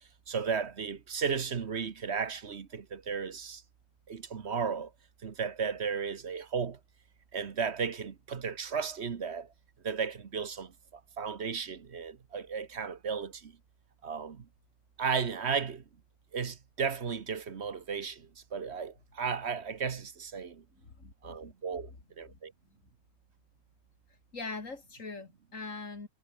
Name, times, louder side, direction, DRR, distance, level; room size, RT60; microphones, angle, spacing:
voice 1, 0.3-3.6 4.1-4.9 5.2-6.8 7.3-9.5 9.8-13.6 14.0-14.5 15.0-15.8 16.3-20.6 21.2-21.9 22.2-22.5, right 6 dB, 60° right, 1.5 m, -34 dB
voice 2, 20.7-21.5 21.9-22.0 22.3-22.4 24.3-26.1, left 3 dB, 85° left, 3.5 m, -42 dB
omnidirectional pair, 1.3 m